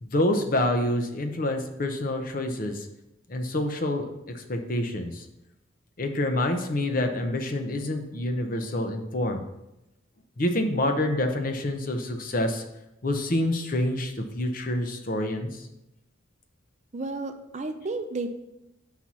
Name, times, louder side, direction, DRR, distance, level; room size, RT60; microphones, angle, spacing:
voice 1, 0.0-2.9 3.3-4.1 4.3-5.3 6.0-9.4 10.4-12.6 13.0-15.6, left 1 dB, 45° left, 5 dB, 0.8 m, -27 dB
voice 2, 16.9-18.3, right 2 dB, 35° right, 7 dB, 0.5 m, -32 dB
5.7 x 4.3 x 6.1 m, 0.89 s
head